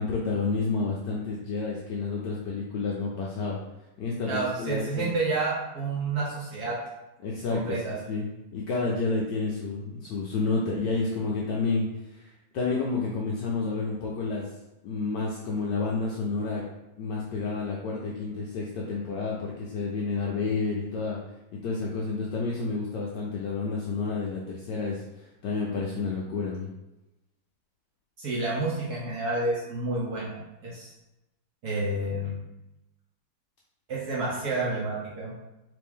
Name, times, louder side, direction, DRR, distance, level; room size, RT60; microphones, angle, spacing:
voice 1, 0.0-3.6 4.0-5.1 7.2-7.6 8.1-8.2 8.5-11.9 12.5-14.4 14.8-16.6 17.0-21.2 21.6-25.0 25.4-26.7, left 4 dB, 75° left, -3 dB, 1.0 m, -30 dB
voice 2, 4.2-6.8 7.5-8.0 28.2-30.9 31.6-32.3 33.9-35.3, right 2 dB, 60° right, -6 dB, 1.1 m, -29 dB
3.4 x 3.3 x 3.6 m, 0.95 s
omnidirectional pair, 2.4 m